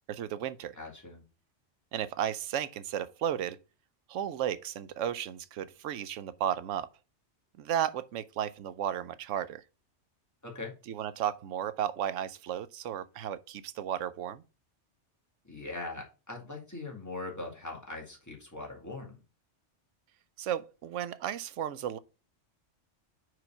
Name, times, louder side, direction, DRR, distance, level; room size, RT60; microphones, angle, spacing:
voice 1, 0.1-0.8 1.9-3.6 4.1-6.9 7.6-9.6 10.9-14.4 20.4-22.0, right 10 dB, 85° right, 0.9 m, -34 dB
voice 2, 0.7-1.2 10.4-10.7 15.4-19.2, left 2 dB, 15° left, 2.2 m, -41 dB
5.0 x 4.8 x 5.7 m
omnidirectional pair, 1.2 m